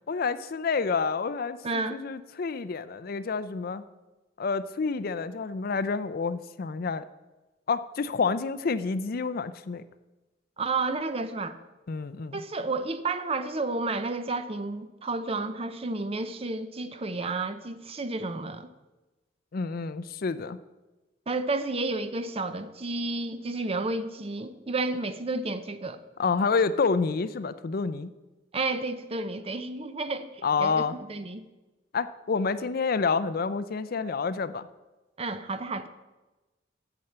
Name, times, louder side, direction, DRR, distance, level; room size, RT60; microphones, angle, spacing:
voice 1, 0.1-3.9 4.4-7.0 7.7-9.8 11.9-12.4 19.5-20.6 26.2-28.1 30.4-30.9 31.9-34.7, left 4 dB, 50° left, 13 dB, 0.5 m, -28 dB
voice 2, 1.6-2.0 10.6-11.6 12.3-18.7 21.3-26.0 28.5-31.4 35.2-35.9, right 3 dB, 30° right, 11 dB, 0.6 m, -31 dB
8.6 x 7.1 x 7.9 m, 1.1 s
head